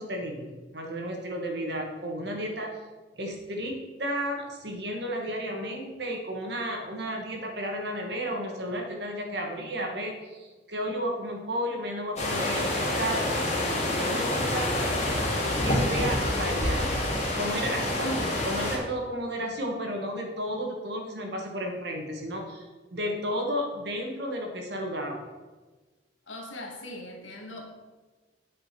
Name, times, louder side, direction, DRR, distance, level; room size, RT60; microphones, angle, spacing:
voice 1, 0.0-2.7 3.2-14.7 15.6-17.0 17.3-25.2, equal, 60° right, 2 dB, 1.8 m, -33 dB
sound 1, 12.2-18.8, left 1 dB, 35° left, 2.2 m, -27 dB
voice 2, 26.3-27.6, left 1 dB, 85° left, 1 dB, 1.9 m, -40 dB
8.9 x 5.4 x 6.0 m, 1.3 s
head